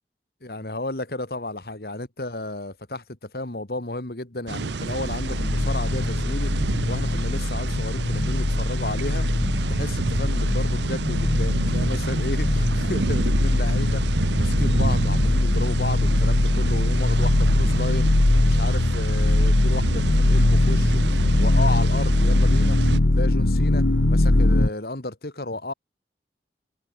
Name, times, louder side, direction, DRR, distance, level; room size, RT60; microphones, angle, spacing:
voice 1, 0.4-6.5 6.9-9.3 9.7-14.0 14.3-18.1 18.4-22.8 23.1-25.7, left 2 dB, 60° left, 2.1 m, -33 dB
sound 1, 4.5-23.0, right 3 dB, 90° right, 0.8 m, -29 dB
sound 2, 4.8-24.7, left 1 dB, 85° left, 1.3 m, -21 dB
head